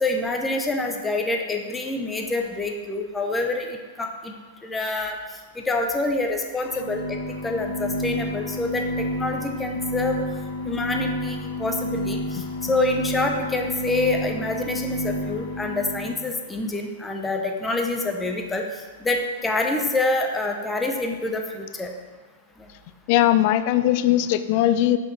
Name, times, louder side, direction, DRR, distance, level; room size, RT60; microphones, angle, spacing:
voice 1, 0.0-4.3 4.6-5.2 5.6-7.2 7.4-10.2 10.6-18.6 19.0-21.9, left 2 dB, 10° left, 3 dB, 0.8 m, -26 dB
sound 1, 6.6-16.2, left 1 dB, 90° left, 1.1 m, -30 dB
voice 2, 23.1-25.0, left 13 dB, 50° left, 12 dB, 0.4 m, -19 dB
5.9 x 5.2 x 4.3 m, 1.4 s
hypercardioid pair, 120°, 0 cm